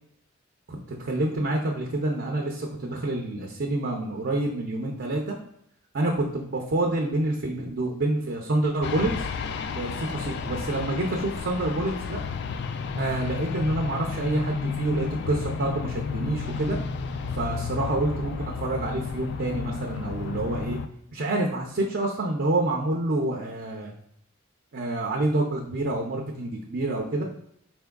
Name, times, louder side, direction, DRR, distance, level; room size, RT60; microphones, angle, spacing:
voice 1, 0.7-5.4 5.9-9.3 9.8-12.2 13.0-16.8 17.3-20.8 21.1-23.9 24.7-27.2, right 2 dB, 55° right, 0 dB, 0.5 m, -27 dB
sound 1, 8.8-20.9, left 5 dB, 55° left, 0.3 m, -32 dB
4.3 x 3.5 x 2.2 m, 0.74 s
head